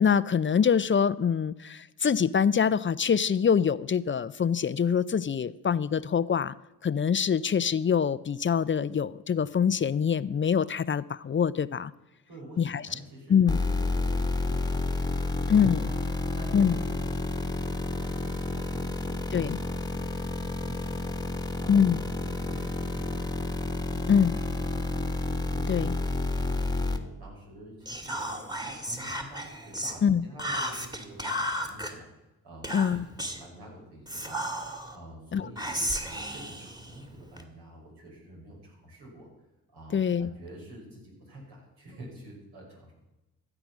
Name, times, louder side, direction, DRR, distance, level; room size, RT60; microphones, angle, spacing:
voice 1, 0.0-6.5 6.8-11.9 12.6-12.8 13.3-13.6 15.5-15.9 16.5-16.8 19.3-19.6 21.7-22.0 24.1-24.3 25.7-25.9 30.0-30.2 32.7-33.0 35.3-35.4 39.9-40.3, left 7 dB, 30° left, 17 dB, 0.5 m, -24 dB
voice 2, 12.3-23.6 23.9-25.1 25.4-32.1 32.4-39.3 39.7-42.9, right 1 dB, 75° right, -2 dB, 5.9 m, -48 dB
sound 1, 13.5-27.0, left 2 dB, 10° left, 1.4 m, -30 dB
Whispering, 27.9-30.0 30.4-31.9 32.6-33.5 34.1-35.0 35.6-37.4, equal, 10° right, 2.0 m, -34 dB
14.5 x 7.9 x 6.1 m, 0.97 s
supercardioid pair, 55°, 39 cm